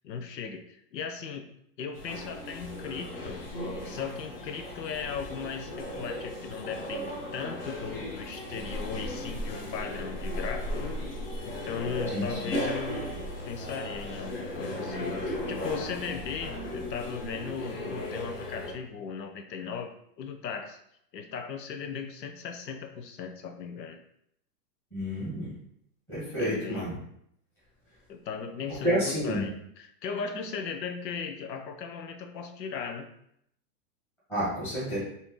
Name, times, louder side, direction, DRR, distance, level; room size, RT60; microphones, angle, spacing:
voice 1, 0.0-0.6 0.9-1.4 1.8-3.4 3.8-11.0 11.4-13.0 13.5-20.8 21.1-24.0 26.4-27.0 28.1-33.1, left 6 dB, 85° left, 5 dB, 0.8 m, -37 dB
sound 1, 1.9-18.7, left 1 dB, 35° left, 0.8 m, -36 dB
voice 2, 12.1-12.5 24.9-25.5 26.1-26.9 28.8-29.4 34.3-35.0, equal, 5° left, -11 dB, 1.1 m, -30 dB
5.6 x 2.9 x 3.1 m, 0.73 s
hypercardioid pair, 175°, 48 cm